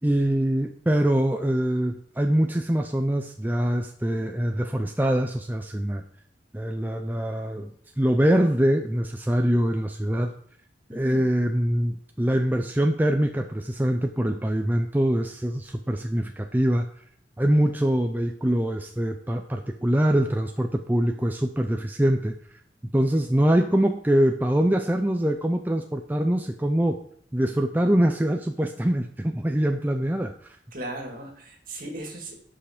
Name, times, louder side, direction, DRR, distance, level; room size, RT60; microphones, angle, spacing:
voice 1, 0.0-6.0 6.5-7.7 8.0-10.3 10.9-16.9 17.4-22.4 22.9-27.0 27.3-30.3, right 1 dB, 10° right, 4 dB, 0.5 m, -24 dB
voice 2, 10.9-11.2 30.7-32.3, right 1 dB, 50° right, 2 dB, 2.3 m, -37 dB
13.0 x 5.7 x 5.1 m, 0.63 s
head